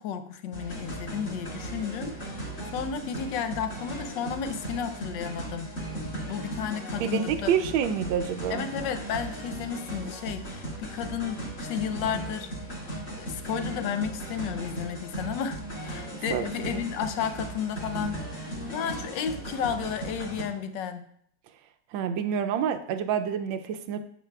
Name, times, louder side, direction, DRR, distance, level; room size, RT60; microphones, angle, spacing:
voice 1, 0.0-2.4 2.7-5.7 6.2-7.5 8.5-12.5 13.2-18.2 18.7-21.0, left 7 dB, 75° left, 9 dB, 1.3 m, -32 dB
sound 1, 0.5-20.4, right 1 dB, 40° left, 2.1 m, -37 dB
voice 2, 7.0-8.6 16.3-16.8 21.9-24.0, right 8 dB, 85° right, 8 dB, 1.4 m, -28 dB
8.9 x 8.1 x 2.3 m, 0.69 s
omnidirectional pair, 2.1 m